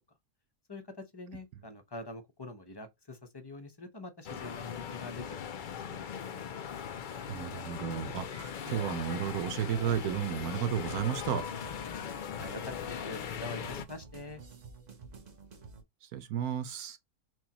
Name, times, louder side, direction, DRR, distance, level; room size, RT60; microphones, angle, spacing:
voice 1, 0.7-6.5 12.0-14.4, left 2 dB, 25° left, 0.6 m, -46 dB
sound 1, 4.2-13.8, left 8 dB, 75° left, 0.4 m, -39 dB
voice 2, 7.3-11.4 16.0-17.0, right 9 dB, 80° right, 1.3 m, -33 dB
sound 2, 10.5-15.8, right 4 dB, 35° right, 0.8 m, -51 dB
6.2 x 2.3 x 2.9 m
omnidirectional pair, 1.6 m